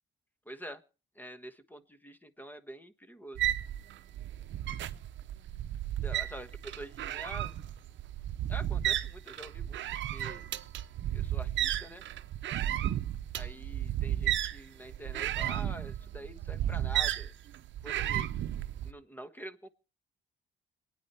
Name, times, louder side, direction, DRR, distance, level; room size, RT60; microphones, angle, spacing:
voice 1, 0.4-0.8 1.1-3.4 6.0-7.6 8.5-10.4 11.1-12.0 13.4-17.3 17.8-18.3 18.8-19.7, right 1 dB, 10° left, 12 dB, 1.3 m, -46 dB
sound 1, 3.3-18.9, right 12 dB, 70° right, 0.7 m, -33 dB
25.0 x 9.6 x 4.3 m, 0.34 s
cardioid pair, 90°, 20 cm